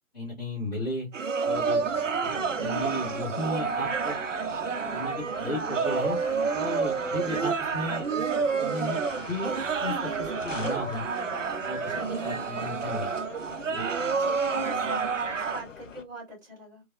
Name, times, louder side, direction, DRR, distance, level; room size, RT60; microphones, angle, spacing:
voice 1, 0.1-1.1 1.4-1.8 2.2-2.3 2.6-4.1 4.9-6.2 6.5-8.2 8.6-9.5 9.8-11.0 11.6-11.9 12.2-13.1 13.7-13.9, left 1 dB, 30° left, -6 dB, 1.0 m, -34 dB
sound 1, 1.1-15.6, right 5 dB, 60° right, 0.5 m, -29 dB
sound 2, 1.5-16.0, left 6 dB, 60° left, 0.5 m, -44 dB
voice 2, 2.2-2.7 11.8-12.4 14.1-16.8, equal, 15° right, -4 dB, 0.7 m, -43 dB
3.2 x 2.2 x 2.2 m, 0.19 s
figure-of-eight pair, 145°, 42 cm